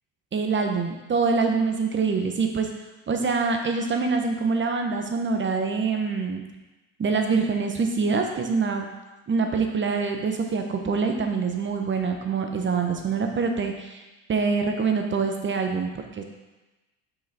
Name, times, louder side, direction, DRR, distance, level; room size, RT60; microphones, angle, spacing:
voice 1, 0.3-2.7 3.1-6.4 7.0-9.0 9.3-14.0 14.3-16.2, right 4 dB, 30° right, 4 dB, 0.9 m, -25 dB
5.8 x 5.1 x 4.1 m, 1.1 s
supercardioid pair, 85°, 40 cm